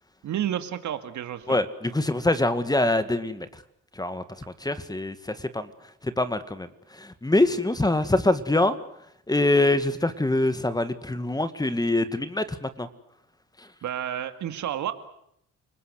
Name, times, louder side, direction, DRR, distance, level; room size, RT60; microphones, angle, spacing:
voice 1, 0.2-1.6 13.8-14.9, right 10 dB, 70° right, 9 dB, 2.3 m, -30 dB
voice 2, 1.5-3.5 4.0-4.2 4.6-5.7 6.0-6.7 6.9-8.8 9.3-12.9, left 2 dB, 15° left, 12 dB, 1.9 m, -24 dB
29.0 x 19.5 x 8.1 m, 0.74 s
cardioid pair, 90°, 30 cm